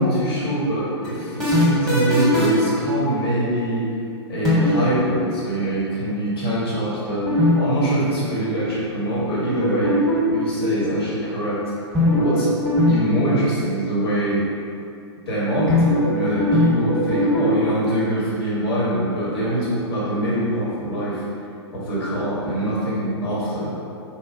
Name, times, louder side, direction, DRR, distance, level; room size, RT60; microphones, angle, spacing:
voice 1, 0.0-3.9 4.3-9.9 10.3-11.6 12.1-12.5 12.9-14.4 15.3-21.2 21.7-23.7, right 1 dB, 60° left, -8 dB, 1.2 m, -24 dB
sound 1, 1.0-2.7 4.4-4.9 7.3-7.5 7.8-7.9 9.6-10.4 11.9-12.4 12.7-12.9 13.2-13.3 15.7-16.1 16.4-17.5, left 1 dB, ahead, 0.9 m, -19 dB
3.1 x 2.2 x 2.6 m, 2.6 s
figure-of-eight pair, 105°, 15 cm